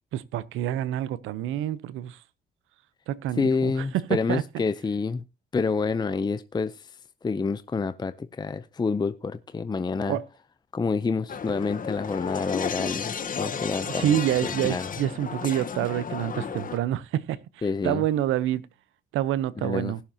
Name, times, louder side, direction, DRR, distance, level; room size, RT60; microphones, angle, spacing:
voice 1, 0.1-2.2 3.1-4.4 10.1-10.2 13.9-18.6 19.1-20.0, right 12 dB, 90° right, 0.8 m, -27 dB
voice 2, 3.4-5.2 5.5-7.0 7.2-10.2 10.7-14.9 17.6-18.0 19.6-20.0, left 4 dB, 20° left, 0.6 m, -28 dB
sound 1, 11.3-16.8, left 6 dB, 45° left, 1.2 m, -33 dB
19.0 x 7.1 x 2.8 m
cardioid pair, 90°, 20 cm